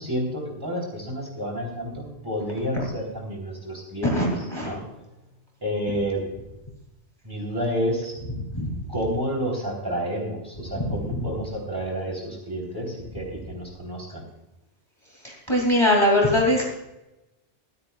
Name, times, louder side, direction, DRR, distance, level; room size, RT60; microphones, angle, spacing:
voice 1, 0.0-4.1 4.6-4.8 5.6-6.2 7.2-8.1 8.9-14.2, equal, 20° right, -1 dB, 3.4 m, -30 dB
voice 2, 4.0-4.7 8.5-8.8 15.2-16.6, left 1 dB, 25° left, -2 dB, 2.6 m, -21 dB
25.0 x 8.7 x 2.3 m, 0.95 s
omnidirectional pair, 1.2 m